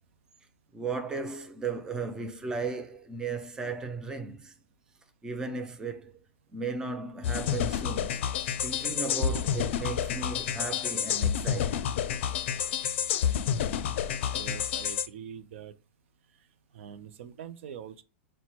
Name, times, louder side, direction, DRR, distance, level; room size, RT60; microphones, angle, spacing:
voice 1, 0.7-4.5 5.2-6.1 6.5-8.2 8.6-11.8, right 4 dB, 10° right, 0.5 m, -35 dB
sound 1, 7.2-15.1, left 8 dB, 65° left, 0.4 m, -29 dB
voice 2, 14.2-15.7 16.7-18.0, right 8 dB, 70° right, 0.5 m, -43 dB
4.3 x 2.1 x 4.3 m
supercardioid pair, 155°, 7 cm